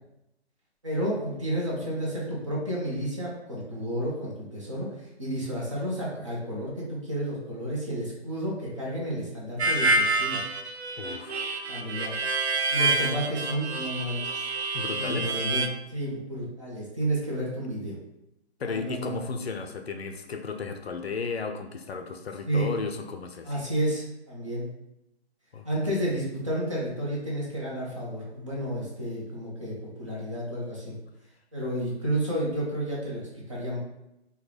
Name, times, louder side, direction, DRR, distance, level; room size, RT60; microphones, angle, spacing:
voice 1, 0.8-10.4 11.7-12.1 12.7-14.4 15.0-18.0 18.6-19.2 22.5-22.7 23.4-24.7 25.7-30.9 31.5-33.8, right 1 dB, 30° right, -5 dB, 0.7 m, -31 dB
Harmonica, 9.6-15.7, right 3 dB, 75° right, 0.5 m, -27 dB
voice 2, 11.0-11.5 14.7-15.5 18.6-23.5 25.5-25.7, left 4 dB, 65° left, 6 dB, 0.5 m, -34 dB
3.6 x 2.2 x 3.2 m, 0.86 s
hypercardioid pair, 170°, 33 cm